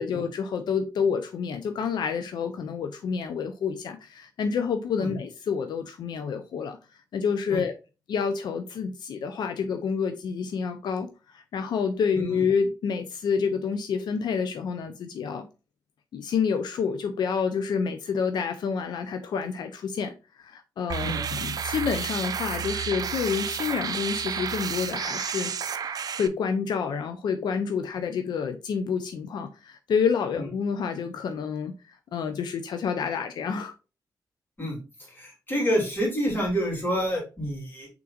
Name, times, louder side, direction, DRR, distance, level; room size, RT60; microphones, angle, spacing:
voice 1, 0.0-6.8 7.1-7.7 8.1-15.5 16.1-25.5 25.9-33.7, left 6 dB, 85° left, 0.5 m, -28 dB
sound 1, 20.9-26.3, right 7 dB, 60° right, 0.4 m, -31 dB
voice 2, 35.1-37.9, equal, 30° left, 2.8 m, -28 dB
5.8 x 3.8 x 2.4 m
cardioid pair, 95°, 7 cm